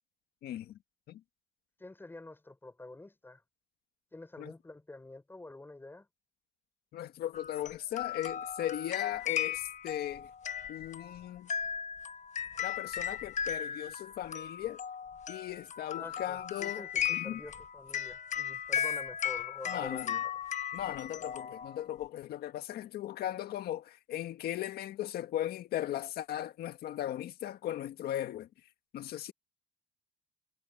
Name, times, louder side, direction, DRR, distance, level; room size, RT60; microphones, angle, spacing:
voice 1, 0.4-0.8 1.1-1.2 4.4-4.5 6.9-10.3 10.7-11.5 12.6-14.8 15.3-17.4 19.7-20.2 20.7-28.5 28.9-29.3, left 12 dB, 65° left, 1.8 m, -37 dB
voice 2, 1.8-3.4 4.1-6.1 16.0-20.3, left 2 dB, 10° left, 5.3 m, -48 dB
sound 1, 7.3-22.1, left 9 dB, 45° left, 1.3 m, -37 dB
cardioid pair, 110°, 17 cm